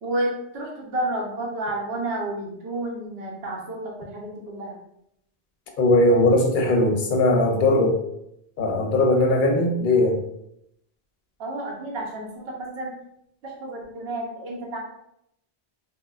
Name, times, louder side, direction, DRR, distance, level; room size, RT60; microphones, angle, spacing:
voice 1, 0.0-4.8 11.4-12.9 13.4-14.8, right 1 dB, 70° right, -2 dB, 0.9 m, -30 dB
voice 2, 5.8-8.0 8.6-10.2, left 2 dB, 60° left, 1 dB, 0.6 m, -19 dB
3.0 x 2.2 x 2.3 m, 0.77 s
omnidirectional pair, 1.1 m